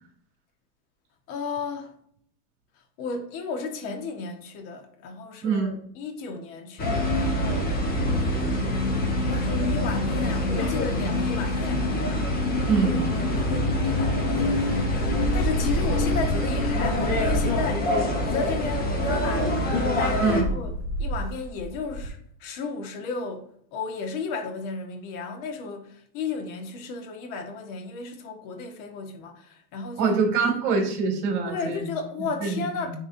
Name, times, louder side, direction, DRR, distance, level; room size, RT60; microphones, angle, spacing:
voice 1, 1.3-2.0 3.0-7.8 9.3-11.9 13.8-17.9 18.2-19.6 20.0-20.7 21.0-23.4 23.7-30.2 31.4-33.0, left 4 dB, 50° left, 1.5 m, -34 dB
voice 2, 5.4-5.8 12.7-13.0 20.2-20.5 30.0-31.8 32.4-32.9, right 5 dB, 50° right, 2.5 m, -24 dB
sound 1, 6.8-20.4, left 1 dB, 20° left, 1.3 m, -25 dB
sound 2, 7.7-13.6 14.1-22.1, right 1 dB, 70° left, 1.8 m, -33 dB
10.5 x 3.6 x 2.7 m
supercardioid pair, 145°, 50 cm